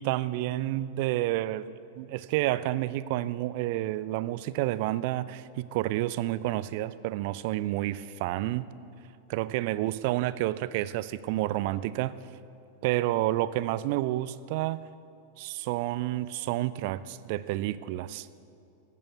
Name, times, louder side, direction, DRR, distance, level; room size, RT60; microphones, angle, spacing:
voice 1, 0.0-8.7 9.3-12.1 12.8-14.8 15.4-18.3, right 15 dB, 50° right, 17 dB, 0.4 m, -30 dB
15.0 x 8.4 x 9.3 m, 2.5 s
figure-of-eight pair, 90°, 0 cm